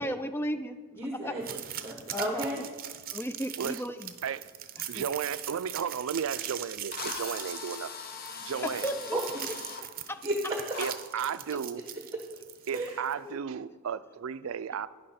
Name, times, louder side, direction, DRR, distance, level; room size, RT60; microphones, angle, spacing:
voice 1, 0.0-0.8 1.1-1.3 2.1-2.5 3.1-4.1 4.9-5.0 8.8-9.2 9.5-10.2 13.2-13.4, equal, 10° left, 0.3 m, -35 dB
voice 2, 0.9-2.7 9.1-9.2 10.2-10.6 12.7-13.0, right 1 dB, 15° right, 1.1 m, -33 dB
sound 1, 1.4-13.1, right 11 dB, 40° right, 0.7 m, -41 dB
voice 3, 4.9-7.9 8.4-8.9 10.8-11.8 12.7-14.9, right 7 dB, 70° right, 0.4 m, -34 dB
Drill, 6.3-6.4 6.9-9.8 10.7-10.9, left 5 dB, 45° left, 0.8 m, -40 dB
11.5 x 9.8 x 4.3 m
head